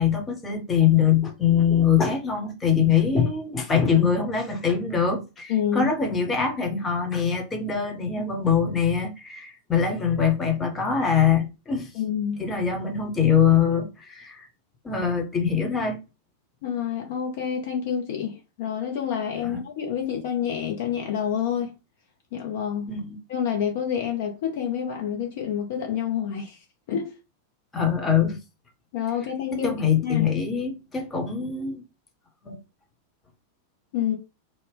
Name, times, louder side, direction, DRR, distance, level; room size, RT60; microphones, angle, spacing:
voice 1, 0.0-11.9 12.4-14.5 14.8-16.0 19.4-19.6 22.9-23.2 27.7-28.4 29.6-31.8 32.4-32.6, left 7 dB, 15° left, 0.8 m, -23 dB
voice 2, 5.5-5.9 11.9-12.4 16.6-21.7 22.3-22.9 23.3-26.6 26.9-27.1 28.9-29.7 30.0-30.3 33.9-34.1, left 8 dB, 50° left, 0.6 m, -28 dB
2.7 x 2.1 x 3.4 m
figure-of-eight pair, 90°, 0 cm